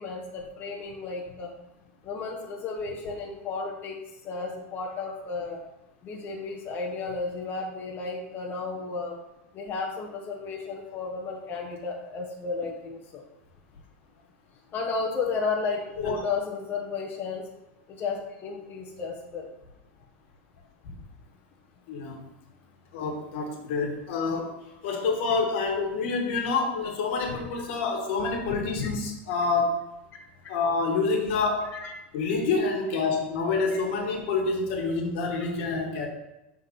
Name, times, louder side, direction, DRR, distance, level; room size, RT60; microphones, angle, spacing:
voice 1, 0.0-1.5 2.0-4.0 4.2-5.6 6.0-9.2 9.5-13.2 14.7-17.4 17.9-19.5 28.8-28.9 31.6-31.9 35.3-35.5, left 4 dB, 30° left, -1 dB, 1.0 m, -33 dB
voice 2, 21.9-22.2 22.9-24.5 24.8-29.8 30.5-31.8 32.1-36.1, left 4 dB, 65° left, 2 dB, 1.5 m, -27 dB
6.5 x 4.1 x 3.9 m, 0.94 s
supercardioid pair, 115°, 7 cm